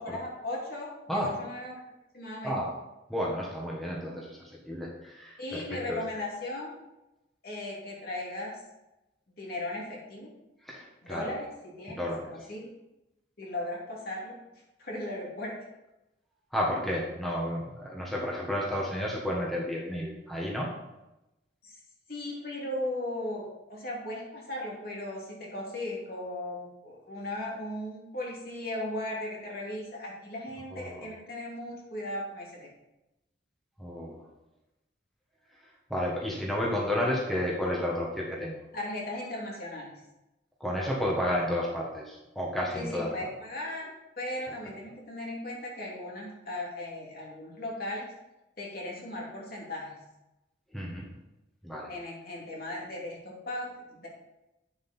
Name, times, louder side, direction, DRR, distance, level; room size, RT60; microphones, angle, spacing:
voice 1, 0.0-1.8 2.1-2.6 5.4-6.7 7.4-8.5 9.3-10.3 11.0-12.7 13.4-14.4 14.8-15.5 21.6-21.8 22.1-32.7 38.7-40.0 42.8-43.9 44.2-48.0 48.6-50.0 51.9-54.1, left 1 dB, 50° left, -3 dB, 2.9 m, -37 dB
voice 2, 3.1-6.0 10.7-11.3 12.0-12.3 16.5-20.7 30.7-31.0 33.8-34.2 35.9-38.6 40.6-43.1 50.7-51.1 51.6-51.9, left 1 dB, ahead, -4 dB, 1.5 m, -31 dB
9.6 x 7.5 x 4.4 m, 0.96 s
head